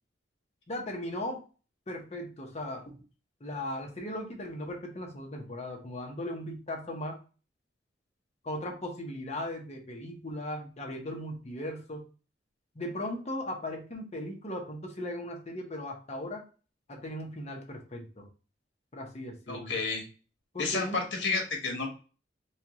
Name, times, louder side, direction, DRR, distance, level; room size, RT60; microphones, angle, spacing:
voice 1, 0.7-1.4 1.9-2.8 3.4-7.2 8.4-12.0 12.7-16.4 16.9-18.3 18.9-19.8 20.5-21.0, left 1 dB, 35° left, 1 dB, 0.9 m, -37 dB
voice 2, 19.5-20.0 20.6-21.9, left 4 dB, 65° left, 1 dB, 1.3 m, -31 dB
4.4 x 2.3 x 2.9 m, 0.35 s
head